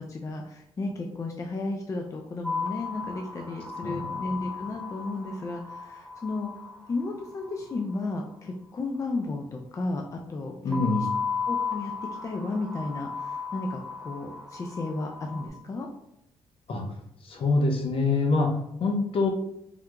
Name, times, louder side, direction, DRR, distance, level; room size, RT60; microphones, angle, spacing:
voice 1, 0.0-11.1 11.5-11.9 12.2-15.9, left 3 dB, 30° left, 2 dB, 0.4 m, -33 dB
sound 1, 2.4-7.8 10.7-15.5, left 5 dB, ahead, 0.8 m, -35 dB
voice 2, 10.6-11.1 16.7-16.8 17.2-19.3, left 3 dB, 55° left, 2 dB, 0.7 m, -25 dB
3.6 x 2.7 x 2.3 m, 0.79 s
cardioid pair, 100°, 11 cm